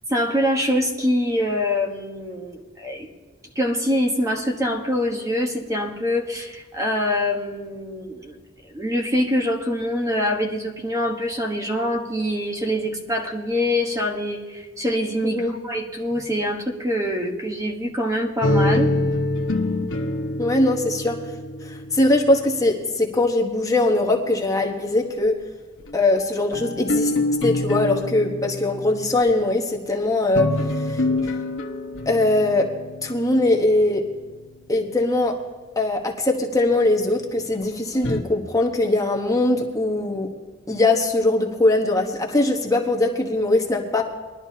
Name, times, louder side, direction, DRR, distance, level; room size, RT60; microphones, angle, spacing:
voice 1, 0.1-3.1 3.5-8.4 8.7-18.9, left 1 dB, 15° right, 2 dB, 1.2 m, -24 dB
sound 1, 18.4-23.0 23.8-24.9 25.8-29.3 30.0-34.7 36.7-36.8 37.5-38.2, left 2 dB, 80° left, 1.1 m, -26 dB
voice 2, 20.4-21.2 21.6-25.4 25.9-27.1 27.4-31.3 32.1-32.7 33.0-34.0 34.7-35.4 35.8-40.3 40.7-44.0, left 2 dB, 20° left, 1 dB, 1.1 m, -21 dB
21.0 x 11.5 x 2.8 m, 1.4 s
head